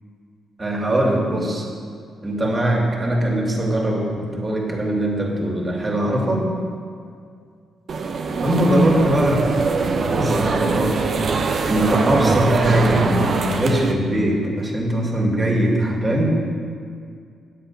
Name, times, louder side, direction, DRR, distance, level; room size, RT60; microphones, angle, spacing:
voice 1, 0.6-1.7 2.2-6.5 8.4-9.5 10.0-11.0 11.7-16.4, right 1 dB, 30° right, -2 dB, 2.6 m, -21 dB
sound 1, 7.9-13.9, right 4 dB, 60° right, 0.7 m, -22 dB
9.3 x 7.5 x 5.6 m, 2.2 s
hypercardioid pair, 50°, 0 cm